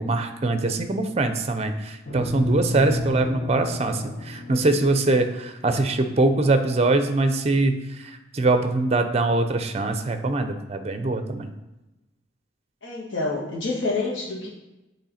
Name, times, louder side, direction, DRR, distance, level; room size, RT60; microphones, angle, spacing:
voice 1, 0.0-11.5, right 2 dB, 30° right, 8 dB, 0.5 m, -23 dB
sound 1, 2.1-6.5, left 2 dB, 45° left, 1.6 m, -32 dB
voice 2, 12.8-14.5, left 3 dB, 75° left, -3 dB, 1.6 m, -27 dB
8.5 x 3.1 x 4.2 m, 0.99 s
head